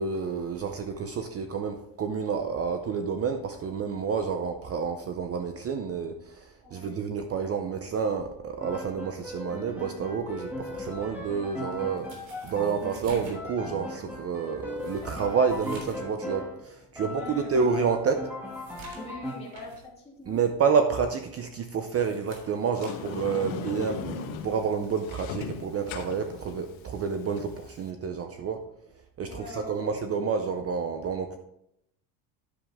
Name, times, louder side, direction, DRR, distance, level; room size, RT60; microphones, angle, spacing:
voice 1, 0.0-18.3 20.3-28.6 29.2-31.4, right 6 dB, 30° right, 7 dB, 0.6 m, -29 dB
voice 2, 6.6-7.0 17.0-17.5 18.9-20.4 29.2-29.9, left 2 dB, 10° left, -5 dB, 2.4 m, -43 dB
Piano, 8.6-16.7 16.9-19.3, left 1 dB, 5° right, 2.0 m, -39 dB
sound 1, 10.7-16.1 16.5-16.6 17.1-17.2 17.7-19.9 20.3-20.5 21.7-23.7 24.8-25.0, right 2 dB, 65° right, 3.3 m, -50 dB
Sliding door, 22.7-27.9, left 7 dB, 70° left, 1.3 m, -38 dB
9.9 x 7.2 x 3.5 m, 0.78 s
cardioid pair, 140°, 48 cm